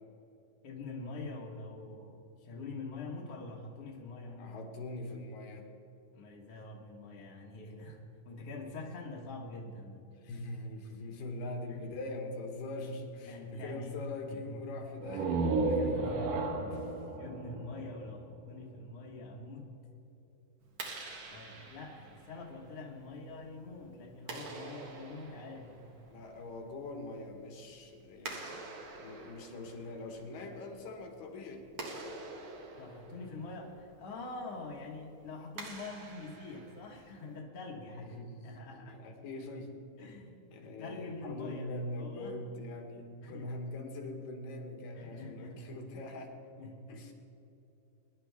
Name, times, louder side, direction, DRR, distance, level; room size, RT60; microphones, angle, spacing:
voice 1, 0.6-4.6 6.1-10.1 11.7-12.0 13.2-14.0 14.3-14.7 15.8-16.8 17.2-19.7 21.3-25.9 32.7-39.0 40.0-42.4 43.2-43.5 44.9-45.7 46.6-47.1, left 3 dB, 55° left, -3 dB, 1.9 m, -45 dB
voice 2, 4.4-5.7 10.2-16.2 16.7-16.8 26.1-28.7 29.0-31.6 37.9-39.8 40.5-46.3 46.9-47.1, left 2 dB, 75° left, 3 dB, 3.0 m, -42 dB
sound 1, 15.0-18.6, right 3 dB, 70° right, 2.7 m, -33 dB
Clapping, 20.6-37.4, right 2 dB, 50° right, 1.7 m, -48 dB
23.0 x 11.0 x 3.4 m, 2.8 s
omnidirectional pair, 4.0 m